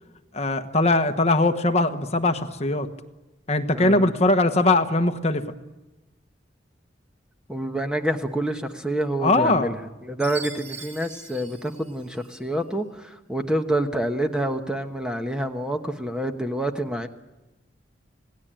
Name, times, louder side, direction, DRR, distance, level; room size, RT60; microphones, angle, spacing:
voice 1, 0.3-2.9 3.5-5.4 9.2-9.7, left 2 dB, 35° left, 7 dB, 1.2 m, -21 dB
voice 2, 3.7-4.1 7.5-17.1, right 1 dB, 5° right, 6 dB, 1.1 m, -27 dB
Chime, 10.2-12.5, right 4 dB, 40° right, 3.4 m, -41 dB
26.5 x 18.5 x 8.9 m, 1.1 s
head